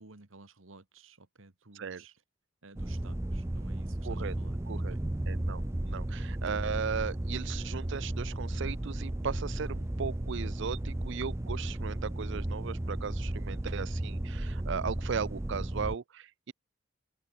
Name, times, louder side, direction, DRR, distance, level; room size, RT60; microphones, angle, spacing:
voice 1, 0.0-2.1 2.6-5.0, right 3 dB, 90° right, 1.9 m, -55 dB
sound 1, 2.8-16.0, right 1 dB, 15° right, 0.5 m, -34 dB
voice 2, 4.0-4.4 4.7-5.0 5.3-16.5, right 6 dB, 65° right, 0.5 m, -37 dB
open air
head